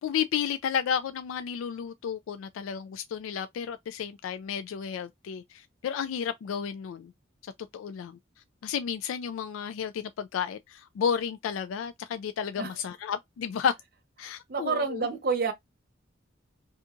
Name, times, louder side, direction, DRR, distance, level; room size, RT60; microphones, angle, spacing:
voice 1, 0.0-7.1 7.4-8.2 8.6-13.7 14.2-15.1, left 7 dB, 85° left, 0.3 m, -32 dB
voice 2, 14.5-15.5, right 5 dB, 50° right, 0.7 m, -28 dB
2.8 x 2.4 x 3.5 m
head